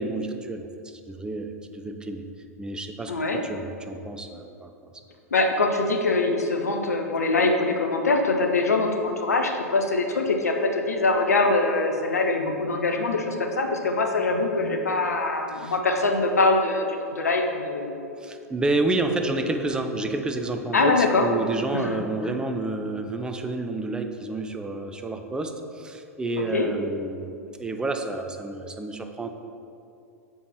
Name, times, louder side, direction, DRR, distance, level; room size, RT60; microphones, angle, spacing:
voice 1, 0.0-2.2 2.6-4.9 15.6-15.7 18.2-27.3 27.6-29.3, right 2 dB, 10° right, 6 dB, 0.4 m, -29 dB
voice 2, 3.1-3.4 5.3-18.1 20.7-21.2 21.7-21.9 26.5-26.7, left 3 dB, 75° left, 3 dB, 0.8 m, -23 dB
7.0 x 4.7 x 4.3 m, 2.6 s
figure-of-eight pair, 95°, 9 cm